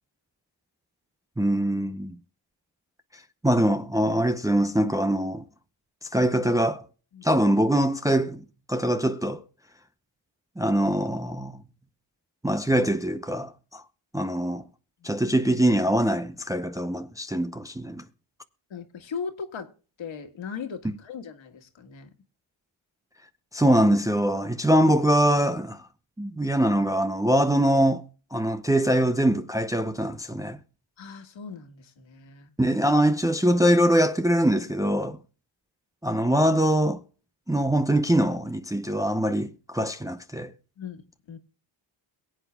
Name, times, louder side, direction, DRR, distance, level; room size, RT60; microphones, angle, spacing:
voice 1, 1.4-2.1 3.4-5.4 6.0-6.8 7.2-9.4 10.6-11.6 12.4-13.8 14.1-14.6 15.0-18.0 23.5-25.9 26.2-28.0 28.3-30.6 32.6-35.2 36.0-37.0 37.5-40.5, right 1 dB, 5° right, 0.6 m, -23 dB
voice 2, 18.7-19.7 20.0-22.1 31.0-32.5 40.8-41.0 41.3-41.4, left 6 dB, 65° left, 1.8 m, -38 dB
22.5 x 8.2 x 2.3 m
cardioid pair, 105°, 49 cm